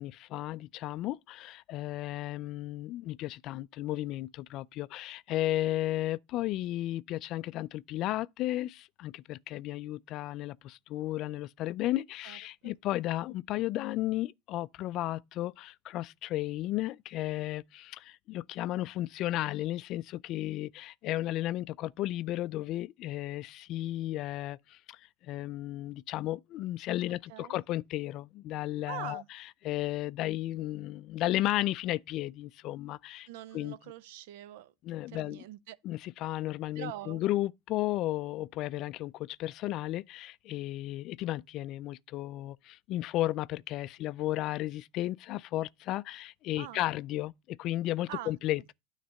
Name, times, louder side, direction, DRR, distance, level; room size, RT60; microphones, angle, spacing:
voice 1, 0.0-33.3 33.5-33.8 34.8-35.4 35.8-48.7, left 15 dB, 50° left, 0.4 m, -34 dB
voice 2, 12.2-12.7 27.3-27.6 28.9-29.3 33.3-34.7 35.1-35.8 36.8-37.2 46.6-46.8 48.1-48.4, right 13 dB, 70° right, 0.6 m, -43 dB
9.5 x 3.3 x 6.3 m
supercardioid pair, 115°, 0 cm